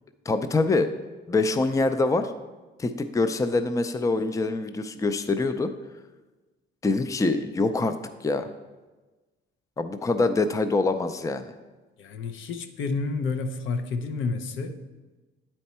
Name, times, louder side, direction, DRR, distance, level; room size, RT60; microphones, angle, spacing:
voice 1, 0.3-0.9 1.3-2.3 2.8-5.7 6.8-8.0 8.2-8.5 9.8-11.5, left 3 dB, 15° left, 10 dB, 0.4 m, -24 dB
voice 2, 12.0-14.7, left 4 dB, 75° left, 6 dB, 0.7 m, -30 dB
9.1 x 4.4 x 4.3 m, 1.2 s
cardioid pair, 90°, 20 cm